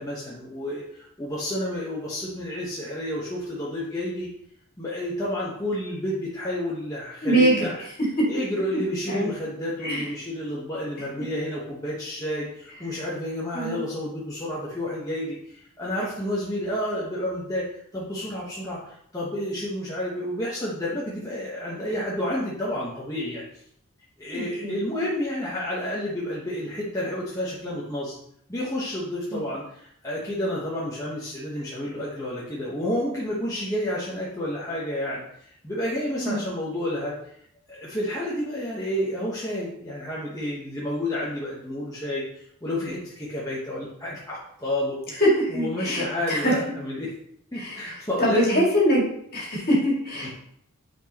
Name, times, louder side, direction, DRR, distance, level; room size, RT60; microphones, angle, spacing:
voice 1, 0.0-4.3 4.8-7.8 8.3-17.7 17.9-23.4 24.2-28.2 28.5-35.2 35.6-37.2 37.7-45.2 45.5-47.1 47.5-48.6 50.2-50.3, left 1 dB, 15° left, -7 dB, 1.1 m, -30 dB
voice 2, 7.2-7.7 8.2-8.3 9.1-9.3 9.8-10.0 13.5-13.8 24.3-24.7 29.3-29.4 36.2-36.4 45.2-46.5 47.6-47.8 48.2-49.0 49.3-50.3, equal, 45° left, -4 dB, 2.2 m, -23 dB
8.9 x 4.5 x 2.9 m, 0.70 s
head